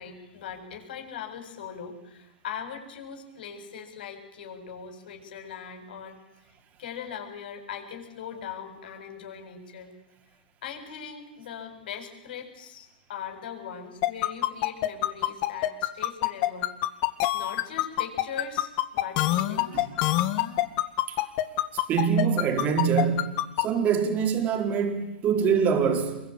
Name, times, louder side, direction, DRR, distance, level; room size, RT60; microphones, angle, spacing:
voice 1, 0.0-6.2 6.8-9.9 10.6-16.7 17.3-20.1, left 7 dB, 70° left, 7.5 m, -40 dB
sound 1, 14.0-23.6, left 16 dB, 45° left, 2.0 m, -24 dB
voice 2, 21.9-23.3 23.6-26.2, right 6 dB, 30° right, 4.5 m, -24 dB
27.5 x 22.5 x 9.0 m
hypercardioid pair, 125°, 5 cm